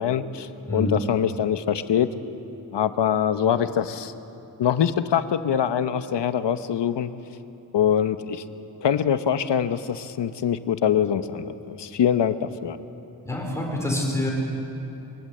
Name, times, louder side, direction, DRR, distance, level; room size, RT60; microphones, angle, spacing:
voice 1, 0.0-2.1 2.7-4.1 4.6-7.1 7.7-8.4 8.8-12.8, left 9 dB, 75° left, 11 dB, 1.0 m, -24 dB
voice 2, 0.7-1.0 13.2-14.3, left 1 dB, 5° left, -2 dB, 4.9 m, -26 dB
23.5 x 19.5 x 7.8 m, 3.0 s
wide cardioid pair, 150°, 43 cm